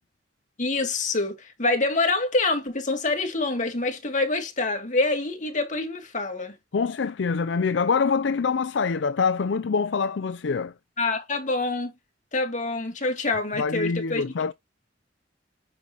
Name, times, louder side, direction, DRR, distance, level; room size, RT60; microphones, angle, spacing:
voice 1, 0.6-6.6 11.0-11.9 12.3-14.2, left 3 dB, 45° left, 2.7 m, -26 dB
voice 2, 6.7-10.7 13.6-14.5, left 5 dB, 70° left, 0.5 m, -25 dB
9.5 x 6.2 x 3.0 m
head